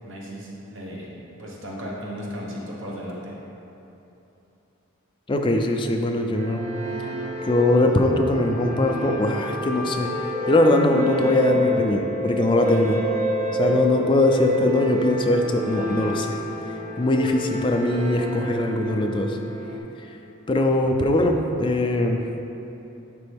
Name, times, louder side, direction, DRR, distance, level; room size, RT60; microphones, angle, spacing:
voice 1, 0.0-1.1 1.4-3.3 12.7-12.8 13.5-13.8, equal, 60° right, -4 dB, 1.2 m, -35 dB
voice 2, 5.3-6.6 7.4-10.1 10.5-13.0 13.6-16.3 17.0-19.4 20.5-22.2, left 1 dB, 25° left, 3 dB, 0.4 m, -21 dB
sound 1, 6.3-19.8, equal, 35° right, 0.7 m, -28 dB
11.0 x 3.8 x 3.5 m, 2.9 s
head